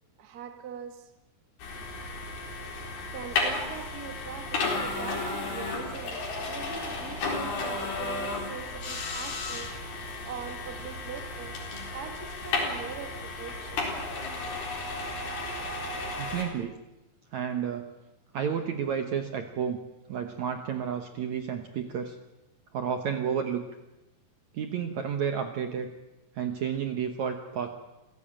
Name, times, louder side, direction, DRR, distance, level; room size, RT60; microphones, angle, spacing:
voice 1, 0.2-1.1 3.1-9.8 10.2-13.8, right 8 dB, 40° right, 1.4 m, -42 dB
sound 1, 1.6-16.4, left 3 dB, 75° left, 6.0 m, -33 dB
voice 2, 16.1-16.7 17.3-17.9 18.3-19.8 20.1-22.2 22.7-23.7 24.5-25.9 26.3-27.7, right 7 dB, 65° right, 2.0 m, -31 dB
26.5 x 16.0 x 8.8 m
omnidirectional pair, 4.5 m